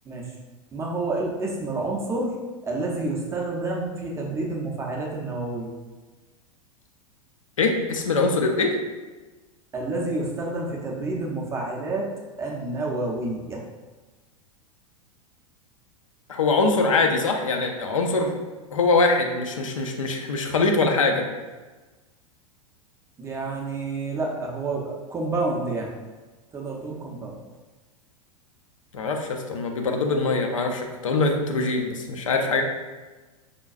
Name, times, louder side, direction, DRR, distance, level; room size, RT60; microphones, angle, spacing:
voice 1, 0.7-2.3 2.6-5.7 9.7-12.1 12.4-13.6 23.2-25.9 26.5-27.3, right 2 dB, 15° right, -1 dB, 0.5 m, -29 dB
voice 2, 7.6-8.8 16.3-18.3 18.7-21.2 28.9-32.6, left 3 dB, 70° left, 2 dB, 0.5 m, -23 dB
5.0 x 2.2 x 2.3 m, 1.2 s
figure-of-eight pair, 90°, 18 cm